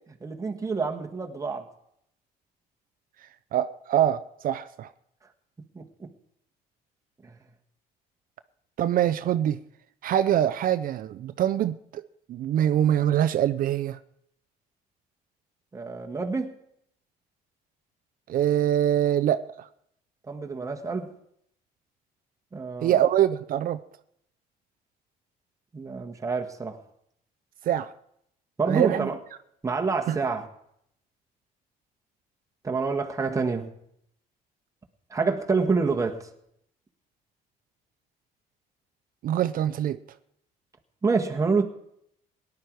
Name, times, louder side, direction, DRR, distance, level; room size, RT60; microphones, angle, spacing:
voice 1, 0.2-1.6 5.7-6.1 7.2-7.3 15.7-16.5 20.3-21.1 22.5-23.0 25.7-26.8 28.6-29.2 29.6-30.5 32.6-33.7 35.1-36.3 41.0-41.7, right 4 dB, 20° right, 2 dB, 1.6 m, -27 dB
voice 2, 3.5-4.9 8.8-9.6 10.0-14.0 18.3-19.7 22.8-23.8 27.6-27.9 28.7-29.1 30.1-30.2 39.2-40.0, right 11 dB, 55° right, 11 dB, 0.6 m, -24 dB
18.0 x 11.0 x 4.8 m, 0.73 s
cardioid pair, 110°, 17 cm